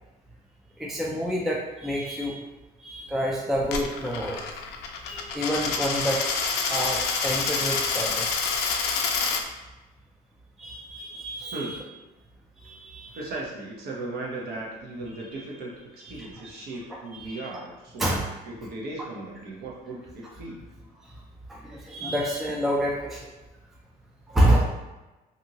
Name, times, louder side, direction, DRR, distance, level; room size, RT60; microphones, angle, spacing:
voice 1, 0.8-2.4 2.8-4.5 5.1-6.2 6.7-8.4 10.6-11.8 12.6-13.2 16.1-16.3 17.1-17.5 18.0-18.2 21.0-21.1 21.5-23.3 24.3-24.6, equal, ahead, -3 dB, 0.4 m, -28 dB
Coin (dropping), 3.6-9.4, left 5 dB, 80° left, 0.4 m, -27 dB
voice 2, 11.5-11.9 13.1-20.6, right 2 dB, 65° right, -4 dB, 0.8 m, -37 dB
2.7 x 2.6 x 2.7 m, 1.1 s
cardioid pair, 110°, 17 cm